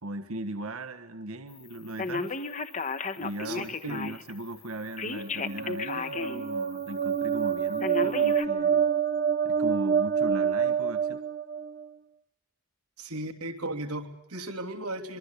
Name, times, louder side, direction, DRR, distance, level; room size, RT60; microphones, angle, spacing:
voice 1, 0.0-2.4 3.2-8.9 9.4-11.2, right 1 dB, 75° right, 8 dB, 1.5 m, -38 dB
Telephone, 2.0-4.3 5.0-6.5 6.9-7.0 7.8-8.5, left 4 dB, 35° left, 1.2 m, -33 dB
voice 2, 3.4-4.0 13.0-15.2, right 1 dB, 90° right, 5 dB, 3.3 m, -36 dB
sound 1, 5.0-11.9, right 7 dB, 40° right, 0.9 m, -27 dB
25.5 x 23.0 x 8.4 m, 0.81 s
head